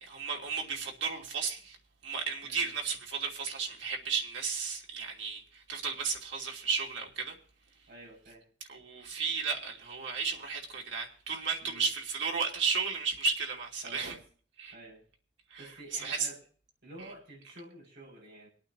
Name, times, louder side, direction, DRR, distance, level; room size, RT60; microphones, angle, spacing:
voice 1, 0.0-1.8 2.0-5.4 5.7-7.3 8.7-14.1 14.6-14.7 15.5-15.6 16.0-16.2, right 5 dB, 85° right, 2.8 m, -34 dB
voice 2, 7.9-8.4 11.6-11.9 13.8-14.2 14.7-15.0 15.6-16.4 16.8-18.5, right 1 dB, 60° right, 6.3 m, -49 dB
26.0 x 8.9 x 2.9 m
head